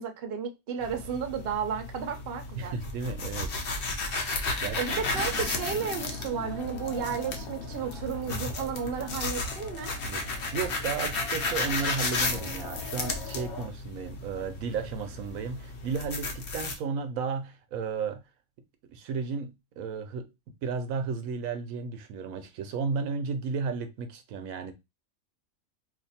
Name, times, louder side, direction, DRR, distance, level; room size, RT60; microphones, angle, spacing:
voice 1, 0.0-2.7 4.4-9.9, right 7 dB, 55° right, 0.7 m, -33 dB
sound 1, 0.8-16.7, left 3 dB, 55° left, 0.7 m, -34 dB
voice 2, 2.5-3.5 4.1-4.8 10.0-10.2 10.5-18.2 18.9-20.3 20.6-24.7, right 5 dB, 80° right, 1.0 m, -33 dB
sound 2, 4.9-13.7, left 3 dB, 90° left, 1.1 m, -42 dB
2.6 x 2.5 x 4.0 m
omnidirectional pair, 1.5 m